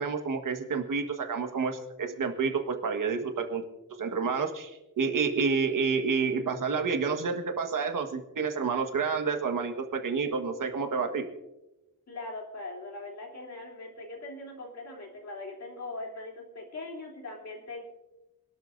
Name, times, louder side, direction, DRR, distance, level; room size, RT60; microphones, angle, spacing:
voice 1, 0.0-3.6 4.0-11.3, right 5 dB, 60° right, 5 dB, 1.6 m, -29 dB
voice 2, 12.1-17.8, left 2 dB, 45° left, -1 dB, 3.3 m, -41 dB
25.5 x 12.5 x 2.6 m, 0.99 s
wide cardioid pair, 155°, 37 cm